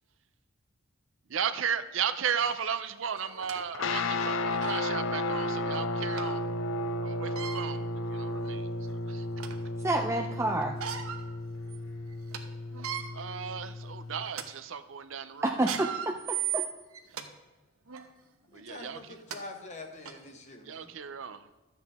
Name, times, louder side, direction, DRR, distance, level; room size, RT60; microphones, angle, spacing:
voice 1, 1.3-6.4 7.0-9.3 12.8-15.5 18.5-19.1 20.7-21.4, right 7 dB, 65° right, 12 dB, 0.5 m, -35 dB
sound 1, 2.4-2.5 3.2-3.6 4.2-4.3 4.6-4.8 6.2-6.3 7.2-7.6 8.4-8.5 9.0-9.7 10.6-11.2 11.7-11.8 12.1-12.4 12.7-13.0 13.7-13.9 14.3-14.5 15.5-17.3 17.9-18.1 18.9-19.0 19.3-19.4 20.1-20.2, right 10 dB, 85° right, 0.9 m, -36 dB
sound 2, 3.7-14.3, left 2 dB, 65° left, 0.6 m, -33 dB
voice 2, 9.8-10.8 15.4-16.6, right 2 dB, 15° right, 3 dB, 0.4 m, -29 dB
voice 3, 18.5-20.9, left 2 dB, 30° left, 4 dB, 1.1 m, -45 dB
12.5 x 8.0 x 3.5 m, 1.2 s
head